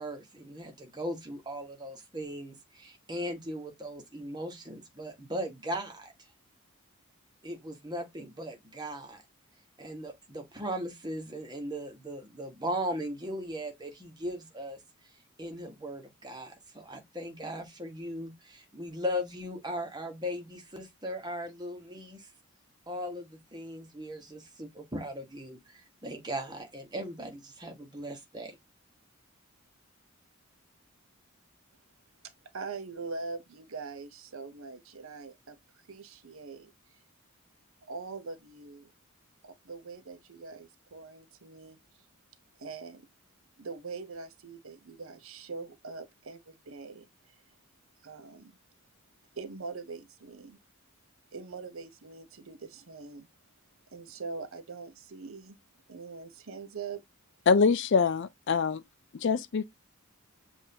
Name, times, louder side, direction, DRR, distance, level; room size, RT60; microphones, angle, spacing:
voice 1, 0.0-6.1 7.4-9.2 9.8-14.8 15.4-22.3 22.9-28.6, equal, 20° right, 1.1 m, -38 dB
voice 2, 32.2-37.0 37.8-38.9 39.4-42.1 42.6-43.1 43.6-47.4 48.0-48.6 49.3-50.6 51.3-53.3 53.9-55.6 55.9-57.0, right 4 dB, 70° right, 0.7 m, -43 dB
voice 3, 57.5-58.8 59.1-59.7, left 5 dB, 55° left, 0.4 m, -24 dB
7.2 x 2.6 x 2.8 m
head